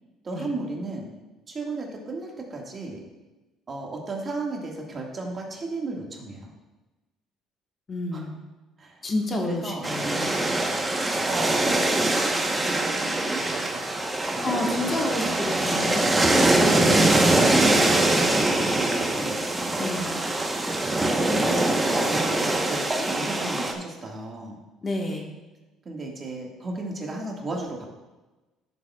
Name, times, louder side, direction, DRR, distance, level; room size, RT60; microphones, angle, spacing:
voice 1, 0.2-1.1 1.5-3.0 3.7-6.5 8.1-8.2 8.8-9.0 9.4-9.9 11.3-11.9 12.6-14.0 14.3-14.6 18.2-19.4 21.0-24.6 25.9-27.9, right 2 dB, 35° right, 0 dB, 1.8 m, -35 dB
voice 2, 7.9-8.4 9.0-10.3 14.4-16.1 16.8-17.3 19.8-20.2 24.8-25.3, left 2 dB, 30° left, 1 dB, 1.4 m, -29 dB
sound 1, 9.8-23.7, right 2 dB, 15° right, 1.0 m, -23 dB
12.5 x 6.8 x 2.4 m, 1.1 s
cardioid pair, 95°, 0 cm